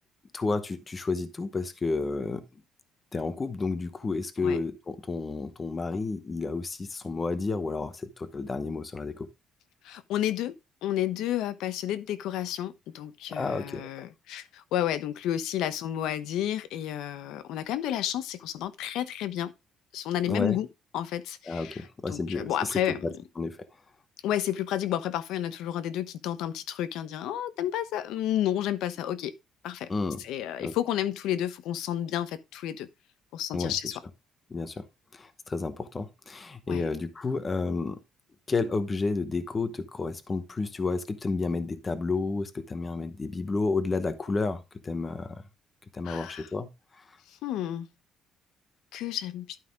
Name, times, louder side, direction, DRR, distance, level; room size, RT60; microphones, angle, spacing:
voice 1, 0.3-2.4 3.1-9.3 13.3-13.9 20.3-20.6 21.5-23.6 29.9-30.2 30.6-30.7 33.5-33.7 34.5-34.9 35.1-38.0 38.5-45.4 45.9-46.7 47.0-47.2, left 3 dB, 20° left, 0.9 m, -31 dB
voice 2, 9.8-10.5 10.8-19.5 19.9-20.7 20.9-21.8 22.1-23.1 24.2-29.3 29.6-29.9 30.2-32.9 33.3-34.0 36.7-36.8 46.0-46.5 47.4-47.9 48.9-49.6, left 11 dB, 70° left, 1.0 m, -31 dB
11.5 x 5.7 x 3.6 m
cardioid pair, 180°, 0 cm